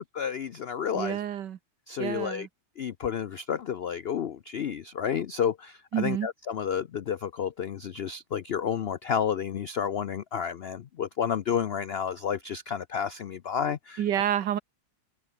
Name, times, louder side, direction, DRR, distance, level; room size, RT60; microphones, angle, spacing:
voice 1, 0.0-1.2 1.9-2.5 2.8-14.0, left 8 dB, 80° left, 0.5 m, -31 dB
voice 2, 0.9-1.6 2.0-2.5 5.9-6.3 14.0-14.6, right 10 dB, 85° right, 1.7 m, -28 dB
open air
omnidirectional pair, 1.8 m